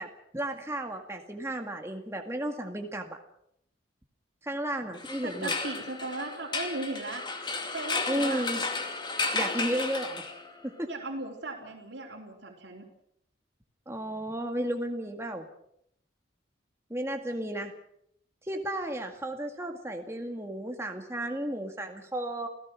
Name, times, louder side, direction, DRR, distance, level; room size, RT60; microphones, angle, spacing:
voice 1, 0.0-3.2 4.4-5.5 8.1-8.6 9.3-10.3 10.6-10.9 13.9-15.5 16.9-17.7 18.4-22.5, right 1 dB, 15° right, 3 dB, 1.9 m, -33 dB
sound 1, 4.9-10.6, left 3 dB, 25° left, 2.4 m, -33 dB
voice 2, 5.2-7.2 7.7-8.4 10.8-12.8, right 2 dB, 70° right, -5 dB, 3.8 m, -37 dB
29.0 x 17.0 x 6.3 m, 0.74 s
head